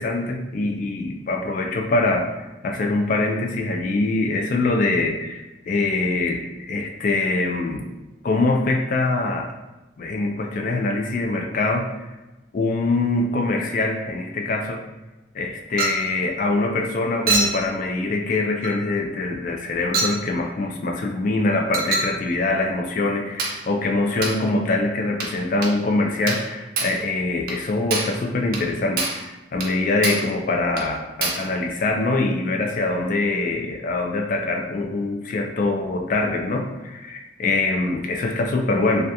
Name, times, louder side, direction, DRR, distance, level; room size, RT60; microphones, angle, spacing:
voice 1, 0.0-6.4 6.7-7.9 8.2-9.5 10.0-11.9 12.5-14.8 15.3-39.1, left 2 dB, 45° left, 2 dB, 0.3 m, -23 dB
Chink clink, 15.8-16.1 17.3-17.6 18.6-18.8 19.9-20.2 21.7-22.2 23.4-23.6 24.2-24.4 25.2-25.4 25.6-25.8 26.3-26.5 26.8-27.0 27.5-27.6 27.9-28.2 28.5-28.7 29.0-29.3 29.6-29.7 30.0-30.3 30.8-30.9 31.2-31.5, right 3 dB, 50° right, 0.4 m, -25 dB
2.3 x 2.2 x 2.7 m, 1.1 s
head